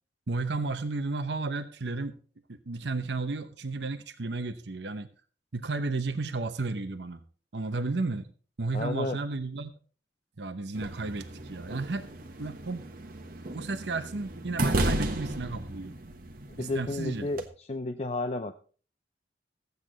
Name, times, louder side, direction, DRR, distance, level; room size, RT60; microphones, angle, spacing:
voice 1, 0.3-2.2 2.5-5.1 5.5-7.2 7.5-8.3 8.6-9.7 10.4-12.1 12.4-12.9 13.5-16.0 16.6-17.3, right 3 dB, 75° right, 8 dB, 0.9 m, -33 dB
voice 2, 8.7-9.2 16.5-18.6, left 2 dB, 35° left, 7 dB, 0.6 m, -32 dB
sound 1, 10.8-17.5, right 1 dB, 55° right, 1.3 m, -34 dB
15.0 x 8.2 x 3.9 m, 0.39 s
head